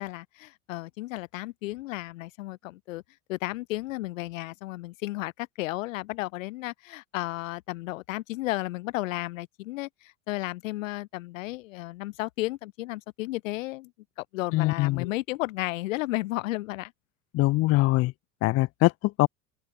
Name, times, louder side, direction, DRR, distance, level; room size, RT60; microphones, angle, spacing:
voice 1, 0.0-3.0 3.3-13.9 14.2-16.9, left 19 dB, 70° left, 1.2 m, -33 dB
voice 2, 14.5-15.1 17.3-18.1 18.4-19.3, left 19 dB, 35° left, 0.5 m, -23 dB
open air
hypercardioid pair, 90°, 41 cm